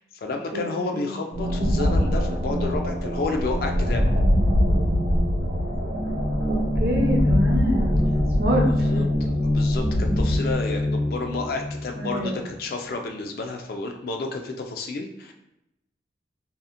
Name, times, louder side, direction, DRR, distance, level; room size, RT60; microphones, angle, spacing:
voice 1, 0.0-4.1 8.7-15.3, left 3 dB, 55° left, 4 dB, 0.3 m, -31 dB
voice 2, 0.5-1.1 6.5-8.1 8.4-9.0 12.0-12.4, equal, 60° right, 0 dB, 0.6 m, -27 dB
sound 1, 1.3-12.3, left 1 dB, 75° right, 1.0 m, -23 dB
2.8 x 2.4 x 2.4 m, 0.85 s
head